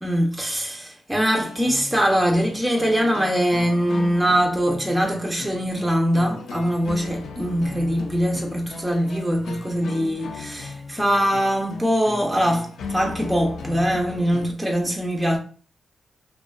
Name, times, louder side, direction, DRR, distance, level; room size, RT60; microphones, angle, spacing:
voice 1, 0.0-15.4, equal, 10° right, 0.5 m, -22 dB
sound 1, 1.4-14.5, left 4 dB, 85° left, 0.4 m, -37 dB
2.6 x 2.2 x 2.2 m
cardioid pair, 65°, 0 cm